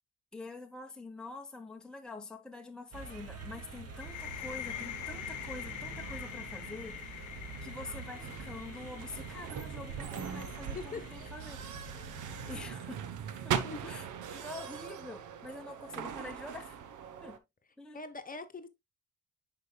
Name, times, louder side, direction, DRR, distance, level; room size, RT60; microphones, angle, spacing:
voice 1, 0.3-11.9 12.5-13.0 13.4-14.1 14.3-16.8 17.2-17.4 17.8-18.0, left 2 dB, 5° left, 1.0 m, -46 dB
sound 1, 2.9-12.7, right 4 dB, 50° right, 2.2 m, -45 dB
sound 2, 4.0-11.5, left 11 dB, 85° left, 0.9 m, -45 dB
sound 3, 8.2-17.4, right 8 dB, 80° right, 1.0 m, -40 dB
voice 2, 10.7-11.3 13.6-13.9 17.9-18.7, left 4 dB, 30° left, 1.2 m, -43 dB
9.9 x 5.1 x 2.3 m
cardioid pair, 90°, 30 cm